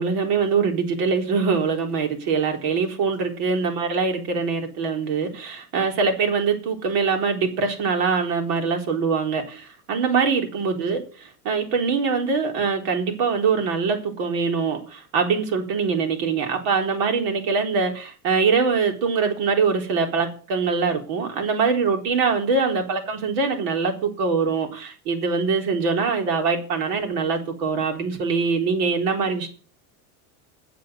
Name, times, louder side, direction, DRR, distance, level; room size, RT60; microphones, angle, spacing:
voice 1, 0.0-29.5, right 5 dB, 65° right, 4.2 m, -23 dB
9.5 x 7.9 x 7.8 m
supercardioid pair, 135°, 45 cm